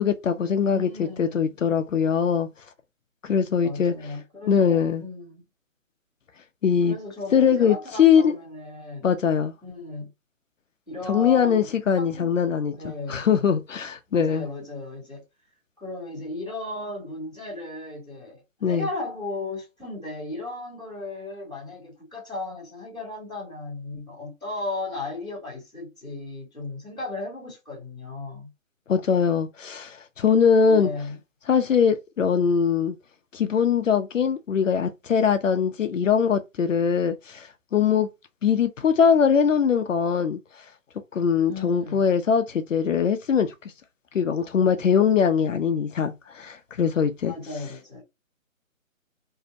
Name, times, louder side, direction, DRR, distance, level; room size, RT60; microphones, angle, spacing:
voice 1, 0.0-2.5 3.2-3.9 4.5-5.0 6.6-7.0 7.3-8.3 9.0-9.5 11.1-14.5 18.6-18.9 28.9-30.9 31.5-33.0 33.3-38.1 38.4-40.4 41.1-43.7 44.1-47.3, left 7 dB, 65° left, 0.5 m, -22 dB
voice 2, 0.6-1.6 3.6-5.4 6.8-9.1 9.6-10.1 10.9-12.3 12.7-13.2 14.1-15.2 15.8-28.5 30.6-31.1 41.5-42.0 47.2-48.0, left 2 dB, 5° right, 0.9 m, -36 dB
2.6 x 2.0 x 2.6 m
hypercardioid pair, 170°, 41 cm